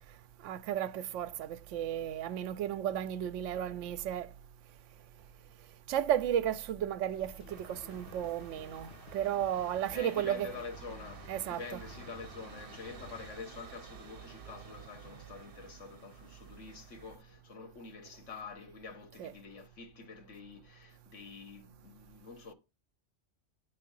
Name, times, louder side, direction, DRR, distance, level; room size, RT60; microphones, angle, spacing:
voice 1, 0.4-4.3 5.9-10.5 11.3-11.8 19.2-19.3, right 10 dB, 90° right, 0.9 m, -34 dB
sound 1, 7.1-13.3, left 4 dB, 55° left, 1.5 m, -54 dB
sound 2, 7.5-17.2, right 7 dB, 50° right, 1.1 m, -51 dB
voice 2, 9.5-22.5, left 4 dB, 85° left, 1.6 m, -47 dB
9.9 x 3.7 x 5.3 m
omnidirectional pair, 1.2 m